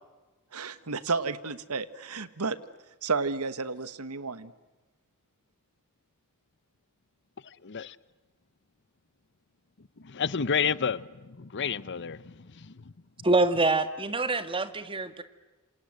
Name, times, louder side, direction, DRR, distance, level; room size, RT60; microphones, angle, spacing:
voice 1, 0.5-2.6 3.0-4.5, right 4 dB, 80° right, 1.5 m, -31 dB
voice 2, 7.4-8.0 9.8-12.9 13.2-13.3, left 6 dB, 55° left, 0.8 m, -31 dB
voice 3, 13.2-15.2, right 2 dB, 25° right, 1.8 m, -25 dB
27.5 x 27.5 x 7.9 m
head